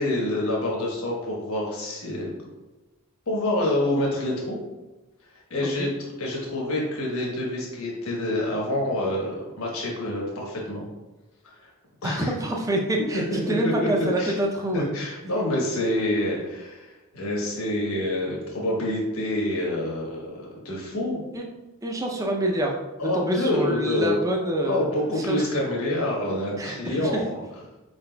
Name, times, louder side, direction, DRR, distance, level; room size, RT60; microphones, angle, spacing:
voice 1, 0.0-2.3 3.3-4.6 5.5-5.9 6.2-10.9 11.6-11.7 12.0-12.3 13.6-13.7 14.2-14.4 14.7-21.2 23.0-24.2 24.6-27.3, left 1 dB, 80° left, -3 dB, 1.2 m, -27 dB
voice 2, 12.0-14.9 21.3-21.4 21.8-22.8 23.1-24.9 25.2-25.5 26.6-27.2, right 1 dB, 15° right, 0 dB, 0.5 m, -26 dB
4.6 x 4.0 x 2.2 m, 1.1 s
head